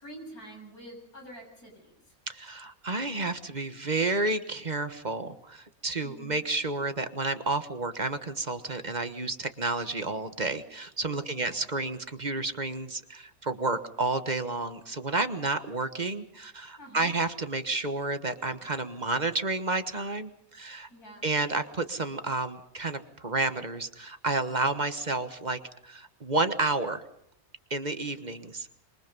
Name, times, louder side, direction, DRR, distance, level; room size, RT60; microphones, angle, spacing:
voice 1, 0.0-2.2 6.0-6.4 11.2-11.6 16.8-17.1 20.9-21.3, right 1 dB, 75° left, 2 dB, 8.1 m, -47 dB
voice 2, 2.3-20.9 21.2-27.0 27.7-28.7, right 3 dB, 30° right, 9 dB, 1.4 m, -31 dB
26.0 x 23.5 x 5.4 m, 0.69 s
omnidirectional pair, 1.6 m